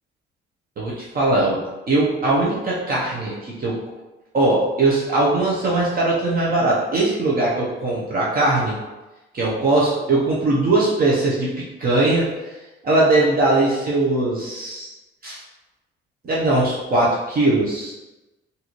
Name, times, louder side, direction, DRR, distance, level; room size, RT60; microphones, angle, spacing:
voice 1, 0.8-1.6 1.9-3.8 4.3-8.7 9.3-11.5 11.8-12.3 12.8-14.9 15.2-15.4 16.2-17.9, right 2 dB, 50° right, -6 dB, 0.9 m, -20 dB
3.9 x 2.7 x 3.0 m, 1.1 s
cardioid pair, 90°, 20 cm